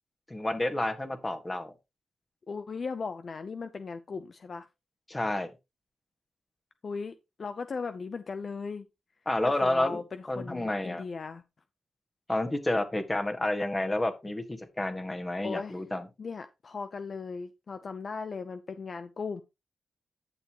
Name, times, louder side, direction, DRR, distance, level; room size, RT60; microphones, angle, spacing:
voice 1, 0.3-1.7 5.1-5.5 9.2-10.0 10.3-11.0 12.3-16.1, left 1 dB, 20° left, 1.7 m, -30 dB
voice 2, 2.5-4.7 6.8-8.9 9.5-11.4 15.4-15.8 16.2-19.4, left 4 dB, 50° left, 0.6 m, -37 dB
11.0 x 6.8 x 3.0 m
cardioid pair, 75°, 0 cm